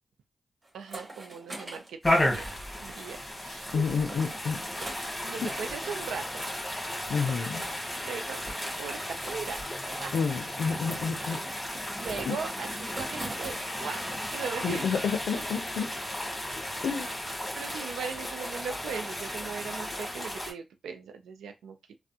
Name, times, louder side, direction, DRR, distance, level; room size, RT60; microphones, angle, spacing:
sound 1, 0.6-3.0 3.3-6.1 6.4-6.6 6.8-14.3 14.6-18.4 18.8-19.7, right 2 dB, 40° right, 1.4 m, -45 dB
voice 1, 0.7-4.0 4.7-6.4 8.0-8.4 8.8-9.6 10.0-10.4 12.0-15.1 17.5-21.9, right 6 dB, 90° right, 0.4 m, -39 dB
sound 2, 2.0-20.5, left 1 dB, 15° left, 1.4 m, -34 dB
voice 2, 3.7-4.6 5.4-5.5 7.1-7.7 10.1-11.4 12.3-12.4 14.6-15.9 16.8-17.1, left 6 dB, 85° left, 0.4 m, -29 dB
3.3 x 2.0 x 2.7 m
cardioid pair, 50°, 0 cm